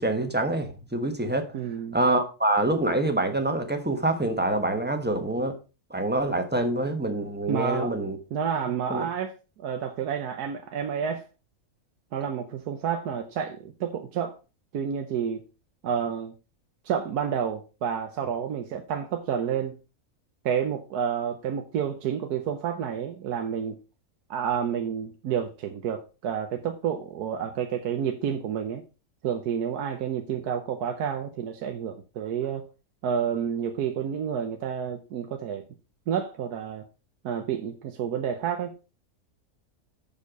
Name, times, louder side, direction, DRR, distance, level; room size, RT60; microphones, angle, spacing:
voice 1, 0.0-1.5 1.9-5.6 5.9-8.2 8.9-9.1, right 2 dB, 5° right, 1.1 m, -26 dB
voice 2, 1.5-2.0 7.5-7.9 8.3-9.3 9.6-11.2 12.1-14.4 14.7-15.4 15.8-16.3 16.8-19.8 20.4-23.8 24.3-28.8 29.2-32.7 33.0-35.6 36.1-36.9 37.2-38.8, right 8 dB, 85° right, 1.4 m, -29 dB
7.4 x 6.6 x 5.2 m
omnidirectional pair, 1.6 m